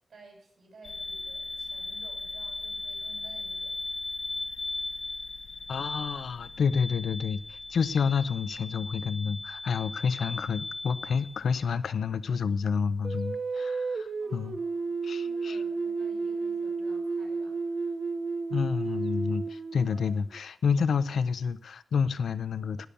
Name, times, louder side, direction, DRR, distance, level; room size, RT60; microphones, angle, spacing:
voice 1, 0.1-3.8 14.2-18.0, right 2 dB, 65° right, 1 dB, 7.0 m, -55 dB
sound 1, 0.8-11.6, left 3 dB, 55° left, 1.3 m, -38 dB
voice 2, 5.7-14.6 15.0-15.6 18.5-22.9, left 6 dB, 90° left, 15 dB, 0.6 m, -29 dB
sound 2, 13.0-20.4, right 4 dB, 45° right, 0.9 m, -32 dB
18.5 x 7.0 x 6.8 m, 0.62 s
wide cardioid pair, 115°, 0 cm